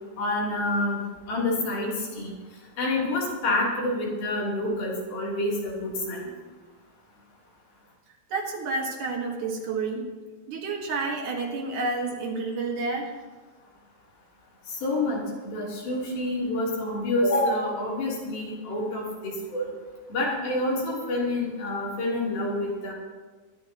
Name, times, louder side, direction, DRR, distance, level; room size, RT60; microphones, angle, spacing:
voice 1, 0.2-2.4 2.8-6.3 14.8-19.7 20.1-22.9, left 1 dB, 90° left, -4 dB, 5.2 m, -28 dB
voice 2, 8.3-10.1 10.5-13.1, right 3 dB, 65° right, 1 dB, 3.1 m, -30 dB
23.0 x 11.5 x 3.0 m, 1.4 s
omnidirectional pair, 4.1 m